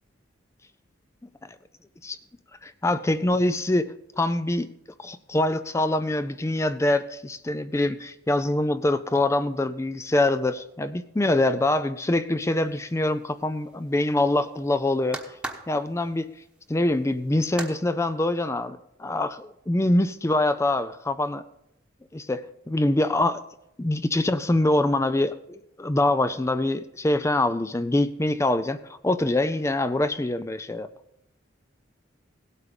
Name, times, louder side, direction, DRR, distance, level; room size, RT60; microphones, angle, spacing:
voice 1, 2.6-4.7 5.0-15.2 15.7-16.3 16.7-21.4 22.1-23.4 23.8-30.9, left 2 dB, 15° left, 12 dB, 0.4 m, -24 dB
sound 1, 12.6-17.8, right 2 dB, 5° right, 1.1 m, -41 dB
17.0 x 8.4 x 5.2 m, 0.82 s
head